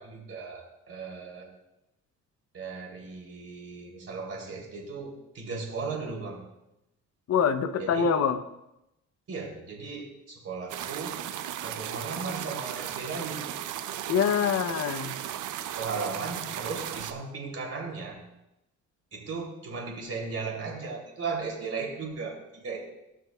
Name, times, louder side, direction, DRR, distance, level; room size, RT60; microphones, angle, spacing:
voice 1, 0.0-1.5 2.5-6.5 7.8-8.1 9.3-11.2 11.6-13.6 15.8-18.2 19.1-22.8, right 4 dB, 50° right, -1 dB, 3.2 m, -36 dB
voice 2, 7.3-8.4 14.1-15.1, left 7 dB, 55° left, 8 dB, 0.8 m, -25 dB
sound 1, 10.7-17.1, right 11 dB, 85° right, 0.7 m, -36 dB
18.0 x 6.1 x 2.4 m, 0.89 s
cardioid pair, 90°, 30 cm